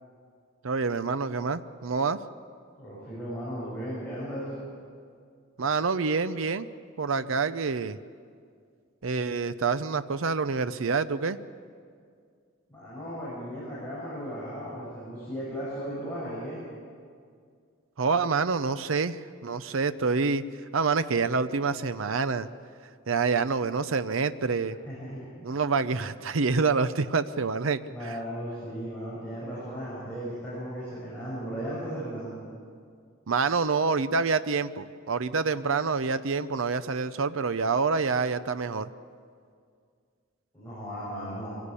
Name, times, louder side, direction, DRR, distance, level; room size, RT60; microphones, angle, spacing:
voice 1, 0.6-2.2 5.6-6.7 7.0-8.0 9.0-11.4 18.0-20.4 20.7-22.5 23.1-24.8 25.4-28.2 33.3-38.9, right 4 dB, 75° right, 12 dB, 0.7 m, -27 dB
voice 2, 2.8-4.5 12.7-16.6 24.7-25.9 27.9-32.4 40.5-41.5, equal, 10° left, -9 dB, 7.5 m, -36 dB
24.0 x 17.0 x 8.4 m, 2.2 s
head